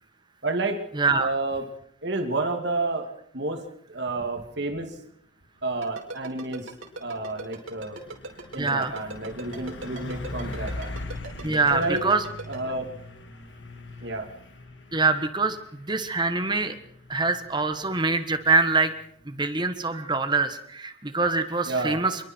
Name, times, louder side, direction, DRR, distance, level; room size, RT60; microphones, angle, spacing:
voice 1, 0.4-0.8 1.1-1.7 2.0-3.1 3.3-3.6 3.9-5.0 5.6-6.7 7.0-8.0 8.5-10.9 11.7-12.0 12.5-12.9 14.0-14.3 21.7-22.0, right 2 dB, 60° right, 4 dB, 2.6 m, -30 dB
voice 2, 1.0-1.3 8.6-8.9 11.4-12.2 14.9-16.8 17.1-18.9 19.3-22.2, right 3 dB, 20° right, 9 dB, 1.5 m, -24 dB
Ringtone, 5.8-12.6, right 2 dB, 85° right, 5.5 m, -38 dB
Truck, 6.0-20.3, left 1 dB, 65° left, 2.0 m, -42 dB
27.5 x 22.5 x 4.6 m, 0.65 s
head